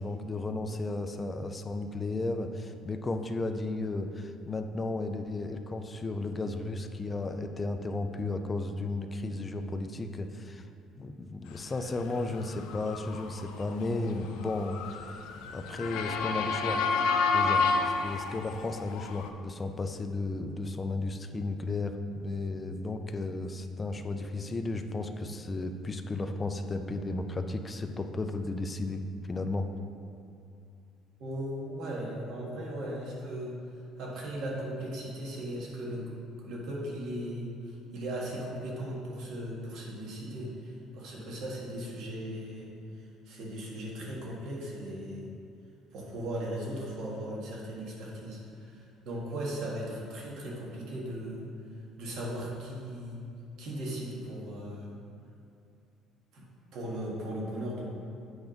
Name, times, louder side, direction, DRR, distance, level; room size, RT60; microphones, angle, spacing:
voice 1, 0.0-10.6 11.0-15.2 15.5-16.8 17.3-17.6 18.0-29.0 29.3-29.7, left 2 dB, 20° left, 6 dB, 0.4 m, -34 dB
Motor vehicle (road) / Siren, 12.0-19.3, left 4 dB, 80° left, 0.5 m, -30 dB
voice 2, 31.2-33.5 34.0-36.1 36.4-45.3 45.9-51.4 52.0-53.2 53.6-54.9 56.3-56.4 56.7-57.8, right 1 dB, 65° right, -3 dB, 1.6 m, -37 dB
8.1 x 3.5 x 5.2 m, 2.5 s
cardioid pair, 145°, 0 cm